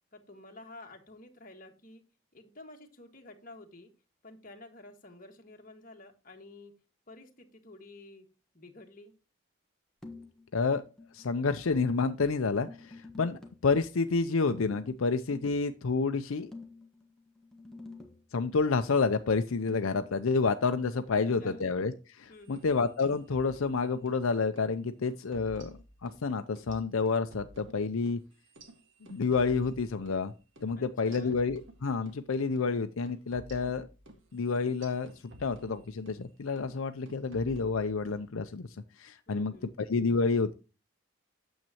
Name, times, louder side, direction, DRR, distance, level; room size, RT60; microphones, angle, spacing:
voice 1, 0.1-2.0 2.3-3.9 4.2-6.7 7.1-8.2 8.5-9.1 21.1-21.6 22.3-22.6 30.7-31.4 39.3-39.7, left 2 dB, 40° left, 3 dB, 1.6 m, -51 dB
sound 1, 10.0-10.5 10.8-13.7 14.5-15.7 16.5-18.3 19.7-21.9, left 3 dB, ahead, 1.2 m, -49 dB
voice 2, 10.5-10.8 11.1-16.5 18.3-25.7 26.0-28.2 29.1-30.3 30.6-33.9 34.3-35.1 35.4-38.7 39.0-39.6 39.9-40.5, left 4 dB, 80° left, 8 dB, 0.6 m, -29 dB
sound 2, 22.4-24.2 24.6-24.7 25.1-26.2 26.6-30.2 30.6-30.7 31.1-32.2 32.6-32.7 33.1-36.2 36.6-36.8 37.1-38.2, right 1 dB, 65° right, 1.7 m, -52 dB
9.1 x 7.3 x 2.9 m, 0.31 s
head